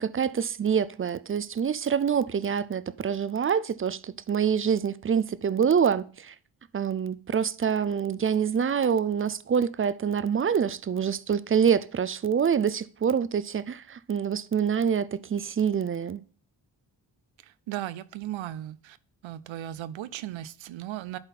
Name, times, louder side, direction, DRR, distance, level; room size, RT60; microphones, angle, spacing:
voice 1, 0.0-6.3 6.7-16.2, right 7 dB, 30° right, 0.4 m, -26 dB
voice 2, 17.4-19.0 19.2-21.2, right 13 dB, 85° right, 0.5 m, -36 dB
10.5 x 4.0 x 4.2 m
cardioid pair, 55°, 45 cm